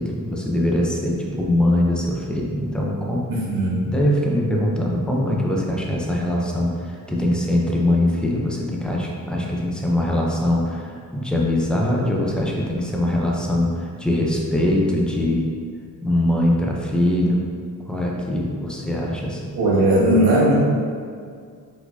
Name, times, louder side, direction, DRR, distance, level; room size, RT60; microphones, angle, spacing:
voice 1, 0.0-3.2 3.9-15.4 16.0-17.4 17.9-19.4, left 1 dB, ahead, -2 dB, 0.6 m, -22 dB
voice 2, 3.3-3.8 19.5-20.5, right 1 dB, 85° right, -5 dB, 1.3 m, -18 dB
4.8 x 4.1 x 2.7 m, 2.1 s
wide cardioid pair, 135°, 35 cm